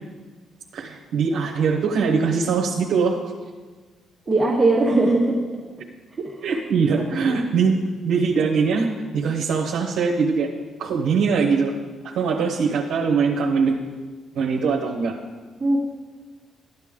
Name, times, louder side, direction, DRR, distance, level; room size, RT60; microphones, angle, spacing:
voice 1, 0.7-3.2 6.4-7.8 8.0-10.5 10.8-11.8 12.0-13.8 14.3-15.1, right 5 dB, 75° right, -2 dB, 1.0 m, -22 dB
voice 2, 4.3-5.4 6.2-6.3 7.2-7.3 15.6-15.8, right 2 dB, 20° right, -4 dB, 1.8 m, -19 dB
13.5 x 9.4 x 3.7 m, 1.4 s
cardioid pair, 90°, 0 cm